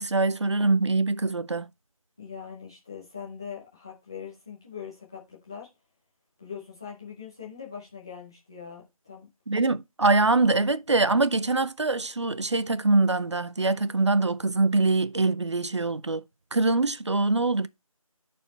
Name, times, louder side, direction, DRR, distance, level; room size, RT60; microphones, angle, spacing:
voice 1, 0.0-1.7 9.5-16.2 16.5-17.7, right 3 dB, 50° right, 0.5 m, -24 dB
voice 2, 2.2-5.7 6.4-9.3, left 7 dB, 10° left, 0.8 m, -41 dB
12.5 x 4.4 x 3.1 m
figure-of-eight pair, 170°, 18 cm